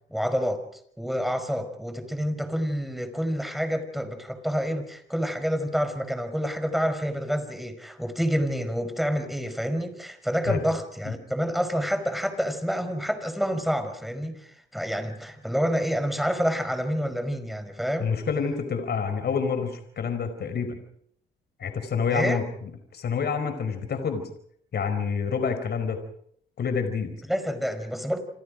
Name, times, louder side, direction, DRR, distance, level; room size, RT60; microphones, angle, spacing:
voice 1, 0.1-0.6 1.0-18.1 22.1-22.5 27.3-28.2, equal, ahead, 8 dB, 5.3 m, -28 dB
voice 2, 18.0-20.8 21.6-24.3 24.7-26.0 26.6-27.2, left 6 dB, 55° left, 8 dB, 4.9 m, -28 dB
28.5 x 27.0 x 5.2 m, 0.68 s
cardioid pair, 90°, 20 cm